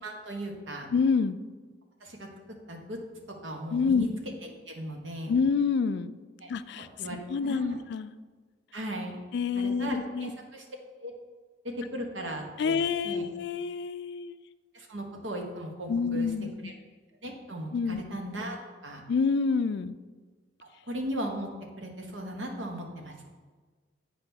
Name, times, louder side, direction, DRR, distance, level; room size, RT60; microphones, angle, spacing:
voice 1, 0.0-0.9 2.0-2.3 2.7-3.0 3.4-4.1 4.4-5.4 6.4-6.5 6.8-7.8 8.7-9.2 9.6-10.6 11.0-11.1 11.6-13.2 14.7-16.3 16.6-16.7 17.2-18.6 18.8-19.0 20.6-21.5 21.8-23.1, right 1 dB, 80° right, 2 dB, 1.2 m, -37 dB
voice 2, 0.9-1.4 3.7-4.1 5.3-6.1 6.5-6.9 7.3-8.1 9.3-10.3 12.6-14.4 15.9-16.7 17.7-18.0 19.1-19.9, left 5 dB, 60° left, 13 dB, 0.3 m, -27 dB
9.9 x 4.8 x 3.4 m, 1.4 s
head